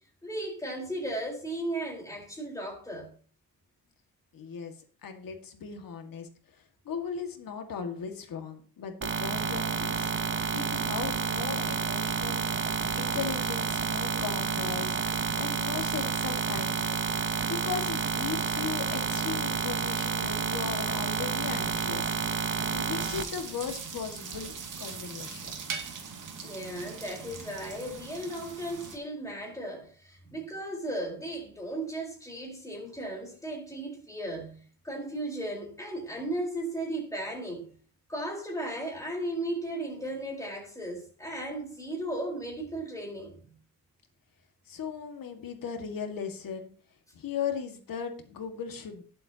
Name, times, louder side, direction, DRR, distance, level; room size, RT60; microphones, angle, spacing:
voice 1, 0.2-3.1 26.4-37.7 38.1-43.6, right 1 dB, 10° left, 4.3 m, -36 dB
voice 2, 4.3-4.7 5.0-10.1 10.5-22.2 22.4-25.5 44.7-46.7 47.1-49.0, left 7 dB, 65° left, 1.9 m, -38 dB
sound 1, 9.0-23.2, right 5 dB, 35° right, 0.9 m, -30 dB
sound 2, 23.0-29.0, right 5 dB, 60° right, 2.4 m, -41 dB
19.5 x 7.7 x 2.9 m
wide cardioid pair, 155°, 36 cm